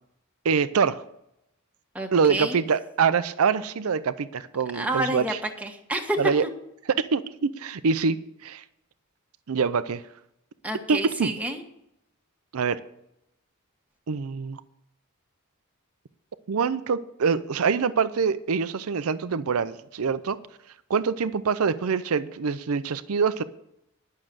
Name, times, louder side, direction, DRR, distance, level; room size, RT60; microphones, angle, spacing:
voice 1, 0.4-1.0 2.1-5.2 6.2-6.4 6.9-8.2 8.4-8.6 9.5-10.0 10.9-11.3 12.5-12.8 14.1-14.6 16.5-20.4 20.9-23.4, right 5 dB, 85° right, 0.5 m, -25 dB
voice 2, 1.9-2.6 4.7-6.5 10.6-11.6, right 1 dB, 5° right, 1.3 m, -29 dB
11.0 x 6.5 x 7.4 m
head